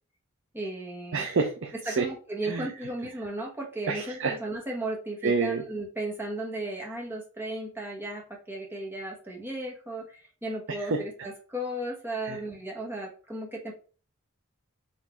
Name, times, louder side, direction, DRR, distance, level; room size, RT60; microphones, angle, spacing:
voice 1, 0.5-1.3 1.8-13.7, right 1 dB, 10° right, -1 dB, 1.2 m, -35 dB
voice 2, 1.1-2.1 2.4-2.7 3.9-4.4 5.2-5.6 10.9-11.0 12.2-12.4, right 4 dB, 60° right, 3 dB, 0.6 m, -28 dB
4.2 x 2.7 x 4.3 m, 0.38 s
head